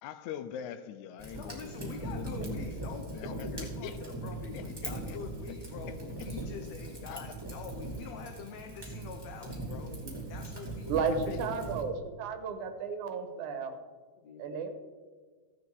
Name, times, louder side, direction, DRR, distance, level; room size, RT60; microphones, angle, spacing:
voice 1, 0.0-4.0 4.5-5.2 5.9-6.0 7.1-7.4 11.3-11.4, left 9 dB, 90° left, 12 dB, 2.1 m, -44 dB
Fire, 1.2-11.8, right 2 dB, 10° right, 2.3 m, -40 dB
voice 2, 1.3-9.9 10.3-11.4 14.2-14.7, left 6 dB, 70° left, 5 dB, 2.0 m, -45 dB
voice 3, 10.9-13.8 14.4-14.7, right 5 dB, 85° right, 8 dB, 2.6 m, -33 dB
15.5 x 8.6 x 4.7 m, 1.5 s
omnidirectional pair, 3.4 m